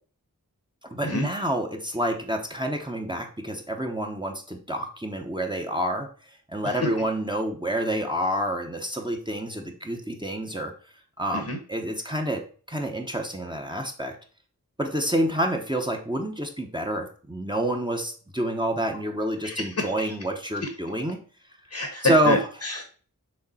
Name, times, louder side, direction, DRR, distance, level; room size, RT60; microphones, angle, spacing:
voice 1, 0.9-6.1 6.5-10.7 11.2-12.4 12.7-14.2 14.8-21.2 22.0-22.4, right 1 dB, 15° right, 2 dB, 0.9 m, -28 dB
voice 2, 19.4-20.1 21.7-22.8, left 2 dB, 50° left, 5 dB, 1.1 m, -28 dB
6.5 x 3.6 x 4.1 m, 0.41 s
wide cardioid pair, 60°, 36 cm